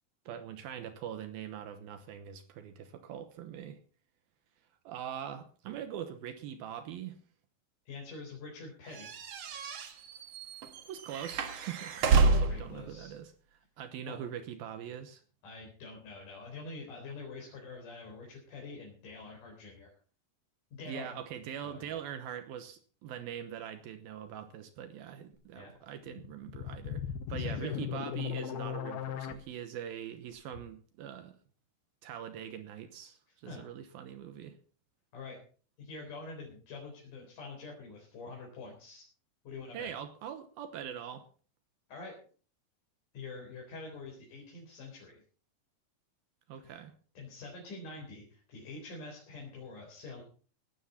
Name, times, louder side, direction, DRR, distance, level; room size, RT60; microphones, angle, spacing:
voice 1, 0.3-3.8 4.8-7.2 10.9-13.3 13.8-15.2 20.8-27.0 27.3-31.4 32.0-34.6 39.7-41.3 46.5-46.9, right 9 dB, 75° right, 9 dB, 2.8 m, -42 dB
voice 2, 7.9-9.2 12.2-13.1 14.1-14.2 15.4-19.9 20.8-21.1 21.6-22.0 25.5-25.7 27.3-27.8 33.5-33.6 35.1-35.4 35.8-39.0 39.4-39.9 41.9-42.2 43.1-45.2 46.6-46.8 47.2-50.2, left 3 dB, 55° left, -1 dB, 5.5 m, -46 dB
sound 1, 9.0-12.7, right 4 dB, 55° right, 2.0 m, -29 dB
sound 2, 26.1-29.3, left 9 dB, 80° left, 3.1 m, -37 dB
17.5 x 12.5 x 4.3 m, 0.42 s
omnidirectional pair, 4.4 m